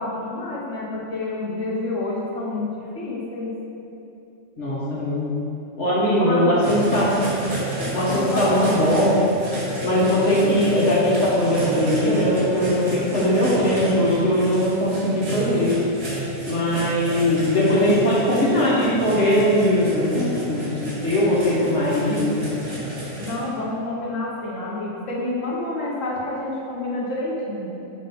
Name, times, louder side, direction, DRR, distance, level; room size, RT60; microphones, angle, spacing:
voice 1, 0.0-3.6 6.2-6.5 8.1-9.0 23.2-27.7, left 2 dB, 80° left, -4 dB, 1.4 m, -28 dB
voice 2, 4.6-5.3 5.8-7.2 7.9-9.2 9.8-15.8 16.4-20.7 21.0-22.4, left 1 dB, 65° left, -7 dB, 1.8 m, -20 dB
sound 1, 6.6-23.3, right 1 dB, 65° right, 2.2 m, -31 dB
6.1 x 4.1 x 5.8 m, 2.8 s
omnidirectional pair, 1.3 m